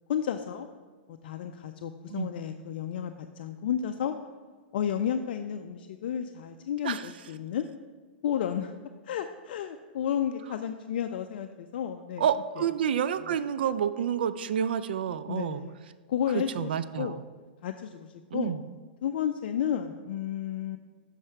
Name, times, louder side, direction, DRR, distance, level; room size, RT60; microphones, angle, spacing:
voice 1, 0.1-0.7 1.1-4.1 4.7-7.7 8.2-8.7 9.1-12.2 15.3-15.8 16.1-16.7 17.0-17.2 17.6-18.6 19.0-20.8, left 9 dB, 60° left, 7 dB, 0.4 m, -32 dB
voice 2, 12.2-15.6 16.3-17.2 18.3-18.6, right 8 dB, 70° right, 13 dB, 0.4 m, -29 dB
7.5 x 5.6 x 4.6 m, 1.5 s
hypercardioid pair, 110°, 6 cm